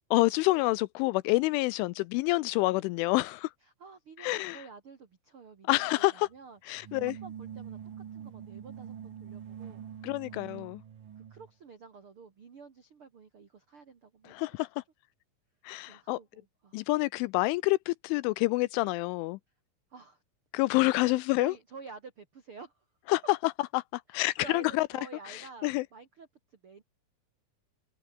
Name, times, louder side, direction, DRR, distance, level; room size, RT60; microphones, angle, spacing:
voice 1, 0.1-3.5 4.2-4.6 5.7-6.3 6.7-7.1 10.0-10.8 14.3-14.7 15.6-16.2 16.7-19.4 20.5-21.5 23.1-23.5 24.1-24.9 25.3-25.8, left 21 dB, 85° left, 2.9 m, -27 dB
voice 2, 3.6-7.8 8.1-9.8 10.3-10.4 11.1-14.6 15.9-16.9 19.9-20.2 21.1-22.8 24.1-26.8, right 4 dB, 65° right, 1.3 m, -50 dB
sound 1, 6.7-11.5, right 9 dB, 50° right, 3.4 m, -44 dB
omnidirectional pair, 5.8 m